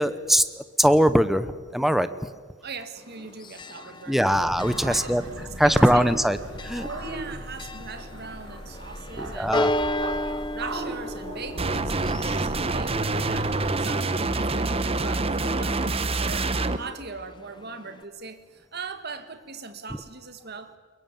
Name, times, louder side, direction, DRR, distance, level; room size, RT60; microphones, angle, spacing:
voice 1, 0.0-1.5 1.7-2.1 4.1-5.2 5.6-6.4 6.6-6.9 9.2-9.7, equal, ahead, 12 dB, 0.9 m, -21 dB
voice 2, 2.6-4.4 4.8-5.3 5.6-6.1 6.7-9.5 10.0-16.5 16.8-20.8, right 4 dB, 50° right, 9 dB, 1.8 m, -40 dB
Church bell, 3.0-18.0, left 1 dB, 25° left, 1.0 m, -36 dB
sound 1, 4.3-13.7, right 1 dB, 70° right, 6.9 m, -38 dB
sound 2, 11.6-16.8, right 3 dB, 30° right, 1.0 m, -26 dB
22.5 x 22.5 x 9.2 m, 1.5 s
head